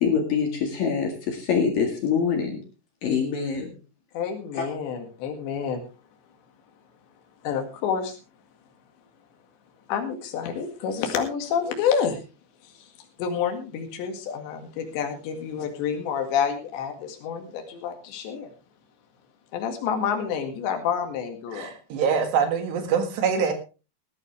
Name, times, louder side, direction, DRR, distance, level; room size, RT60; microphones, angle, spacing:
voice 1, 0.0-2.6 3.0-3.8 4.6-4.7, left 6 dB, 55° left, 3 dB, 3.3 m, -24 dB
voice 2, 4.1-5.8 7.4-8.2 9.9-12.2 12.6-12.9 13.2-18.5 19.5-21.7, left 7 dB, 75° left, 4 dB, 4.2 m, -28 dB
voice 3, 21.5-23.5, right 6 dB, 70° right, 7 dB, 3.9 m, -24 dB
18.0 x 12.0 x 3.4 m, 0.32 s
omnidirectional pair, 5.2 m